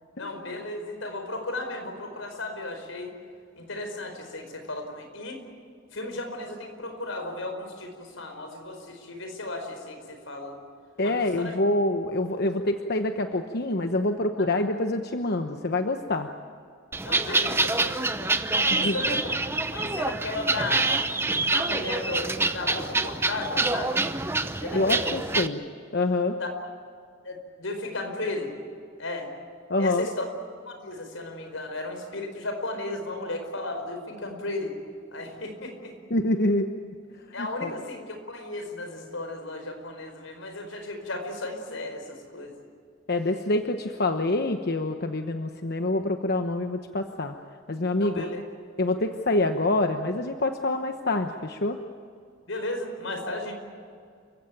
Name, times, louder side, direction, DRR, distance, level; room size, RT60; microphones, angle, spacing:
voice 1, 0.2-3.1 3.6-5.4 5.9-10.6 11.0-11.5 12.6-12.7 14.5-14.6 17.0-20.9 21.5-24.0 24.6-25.1 26.4-26.5 27.2-28.5 29.0-29.3 29.8-30.2 30.7-34.8 35.1-36.0 37.3-42.5 48.0-48.4 52.5-53.5, left 2 dB, 90° left, 5 dB, 5.0 m, -35 dB
voice 2, 11.0-16.3 18.8-18.9 24.7-25.6 25.9-26.3 29.7-30.1 36.1-36.7 37.4-37.7 43.1-47.3 47.7-48.2 48.8-51.8, left 2 dB, 55° left, 6 dB, 1.1 m, -26 dB
sound 1, 16.9-25.5, right 3 dB, 15° right, 0.8 m, -26 dB
29.5 x 16.0 x 9.3 m, 2.2 s
head